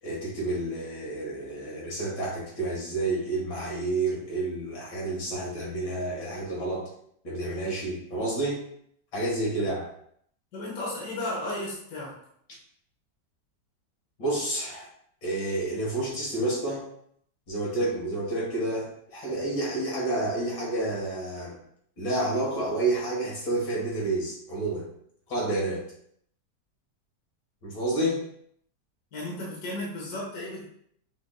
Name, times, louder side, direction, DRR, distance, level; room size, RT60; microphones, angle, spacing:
voice 1, 0.0-6.8 7.2-8.6 9.1-9.9 14.2-14.9 15.2-16.8 17.5-21.6 22.0-24.9 25.3-25.8 27.6-28.2, right 2 dB, 75° left, -4 dB, 2.2 m, -29 dB
voice 2, 10.5-12.1 29.1-30.6, left 1 dB, 60° left, -4 dB, 1.6 m, -34 dB
5.2 x 4.5 x 2.2 m, 0.68 s
omnidirectional pair, 1.9 m